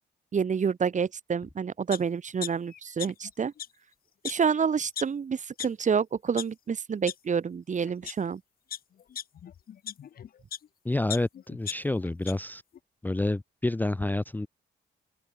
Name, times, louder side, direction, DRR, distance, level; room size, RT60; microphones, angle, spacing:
voice 1, 0.3-3.5 4.2-8.4, right 6 dB, 40° right, 1.2 m, -28 dB
sound 1, 1.9-2.0 2.4-3.3 3.6-3.7 4.2-4.3 5.0-5.1 5.6-5.7 6.2-6.4 7.1-7.2 7.8-8.1 8.7-10.7 11.1-12.3 12.7-12.8, left 9 dB, 50° left, 0.6 m, -37 dB
voice 2, 10.8-12.6 13.0-14.5, left 2 dB, 10° left, 0.5 m, -28 dB
open air
cardioid pair, 90°, 19 cm